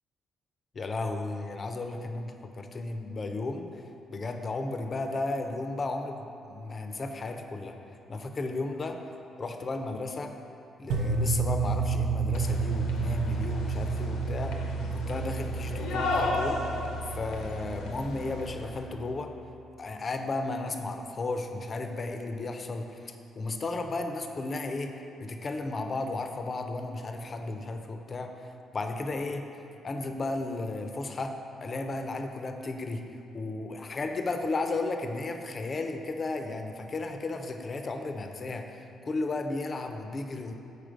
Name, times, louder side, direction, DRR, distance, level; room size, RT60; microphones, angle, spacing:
voice 1, 0.7-3.7 4.1-7.7 8.1-9.0 9.4-10.3 10.8-14.6 14.9-16.6 17.1-19.3 19.8-24.9 25.2-29.4 29.8-31.3 31.6-33.1 33.3-40.5, left 3 dB, 40° left, 5 dB, 0.4 m, -34 dB
sound 1, 10.9-19.0, right 4 dB, 85° right, 0.3 m, -31 dB
sound 2, 12.3-18.8, left 2 dB, 90° left, 0.6 m, -35 dB
5.0 x 4.1 x 5.0 m, 2.7 s
cardioid pair, 90°, 0 cm